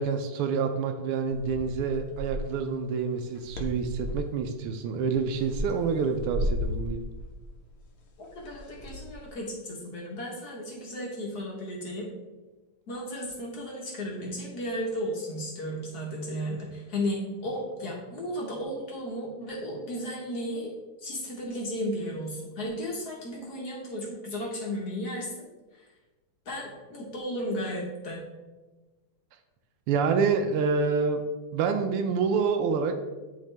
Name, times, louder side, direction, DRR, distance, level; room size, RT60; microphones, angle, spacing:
voice 1, 0.0-7.0 29.9-31.2 31.5-32.9, right 5 dB, 85° right, 7 dB, 1.5 m, -27 dB
sound 1, 1.3-2.6 3.2-4.3 5.0-9.3, equal, 75° left, 1.8 m, -35 dB
voice 2, 8.3-12.1 12.9-20.7 21.0-25.5 25.7-25.8 26.4-28.2, equal, 50° left, -3 dB, 1.5 m, -34 dB
10.5 x 3.6 x 3.3 m, 1.2 s
omnidirectional pair, 2.4 m